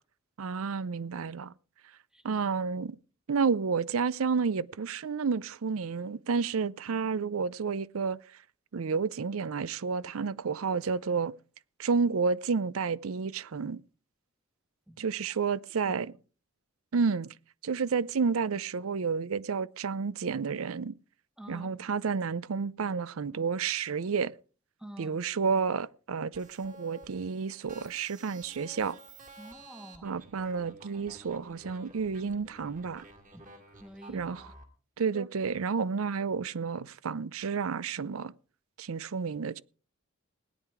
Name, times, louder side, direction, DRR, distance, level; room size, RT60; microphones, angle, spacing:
voice 1, 0.4-1.5 2.2-3.0 3.3-8.2 8.7-11.3 11.8-13.8 15.0-16.1 16.9-17.3 17.6-21.0 21.5-24.3 25.0-29.0 30.0-33.0 34.1-34.4 35.0-38.3 38.8-39.6, right 5 dB, 80° right, 0.5 m, -30 dB
voice 2, 2.1-2.4 14.9-15.0 15.8-15.9 21.4-21.8 24.8-25.2 29.4-30.2 33.3-34.6, equal, 5° right, 1.2 m, -49 dB
sound 1, 26.3-34.6, right 2 dB, 40° right, 2.5 m, -52 dB
17.5 x 10.0 x 4.8 m
head